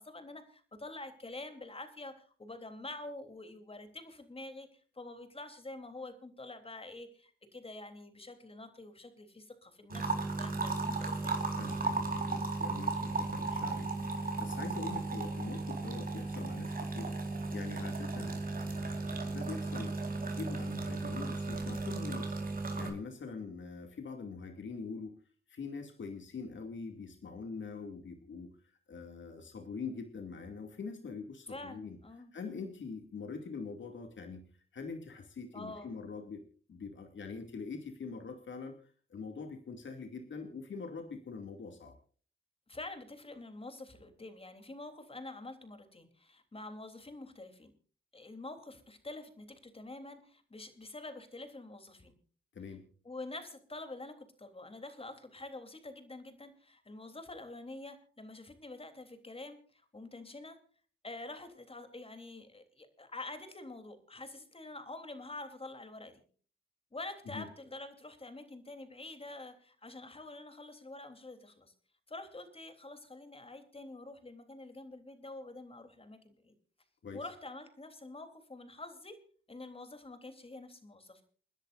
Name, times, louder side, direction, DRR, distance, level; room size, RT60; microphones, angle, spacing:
voice 1, 0.0-11.3 31.5-32.3 35.5-35.9 42.7-47.7 48.1-52.2 53.0-60.6 61.0-66.2 66.9-71.7 72.1-76.5 77.1-79.2 79.5-81.2, left 2 dB, 30° left, 7 dB, 3.4 m, -47 dB
sound 1, 9.9-22.9, right 3 dB, 45° right, 4.2 m, -35 dB
voice 2, 11.5-25.2 25.5-32.0 32.3-36.4 36.7-42.0 52.5-52.8 67.3-67.5 77.0-77.3, left 4 dB, 70° left, 4 dB, 2.4 m, -44 dB
30.0 x 10.5 x 2.6 m, 0.43 s
cardioid pair, 70°, 20 cm